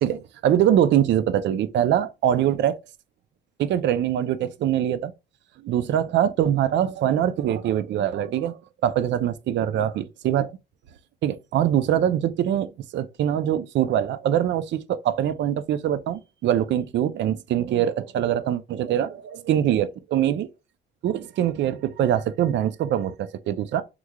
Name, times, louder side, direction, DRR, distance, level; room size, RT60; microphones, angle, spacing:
voice 1, 0.0-2.8 3.6-5.1 5.6-10.5 11.2-20.5 21.0-23.8, right 10 dB, 65° right, 0.4 m, -23 dB
3.6 x 3.0 x 2.2 m
cardioid pair, 90°, 20 cm